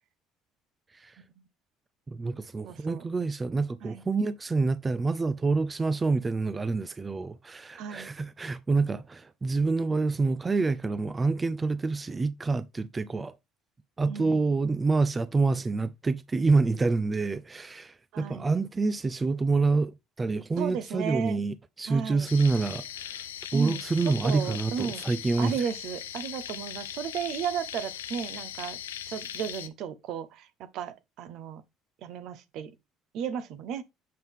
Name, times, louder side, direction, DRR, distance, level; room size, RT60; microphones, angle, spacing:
voice 1, 2.1-13.3 14.0-23.2 23.5-25.6, right 3 dB, 25° right, 0.5 m, -27 dB
voice 2, 2.6-3.0 3.8-4.0 7.7-8.1 14.1-14.5 18.1-18.5 20.6-21.4 21.9-22.3 23.5-25.0 25.4-28.8 29.1-30.5 30.7-31.6 32.0-32.7 33.1-33.8, right 8 dB, 65° right, 0.9 m, -34 dB
sound 1, 22.3-29.7, left 10 dB, 90° left, 0.6 m, -39 dB
7.8 x 5.4 x 3.6 m
hypercardioid pair, 65°, 0 cm